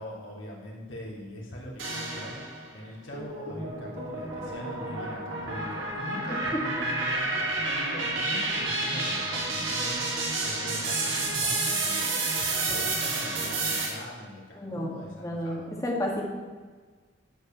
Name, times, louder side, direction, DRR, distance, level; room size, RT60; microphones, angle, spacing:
voice 1, 0.0-15.7, equal, 80° left, -4 dB, 3.7 m, -42 dB
sound 1, 1.8-2.7 3.1-13.9, right 2 dB, 80° right, 2.9 m, -30 dB
voice 2, 14.6-14.9 15.2-16.3, left 1 dB, 15° left, -2 dB, 2.0 m, -31 dB
13.0 x 5.2 x 7.8 m, 1.4 s
head